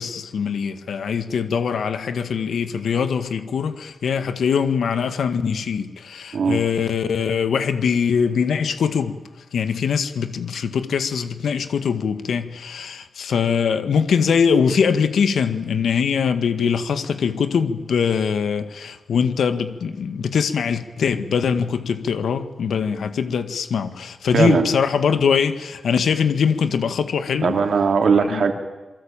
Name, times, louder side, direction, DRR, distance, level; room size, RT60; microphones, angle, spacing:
voice 1, 0.0-9.2 9.5-27.6 28.3-28.4, left 6 dB, 90° left, 1.9 m, -22 dB
voice 2, 24.3-24.7 27.4-28.5, right 5 dB, 65° right, 3.5 m, -19 dB
27.5 x 24.0 x 9.0 m
wide cardioid pair, 145°, 0 cm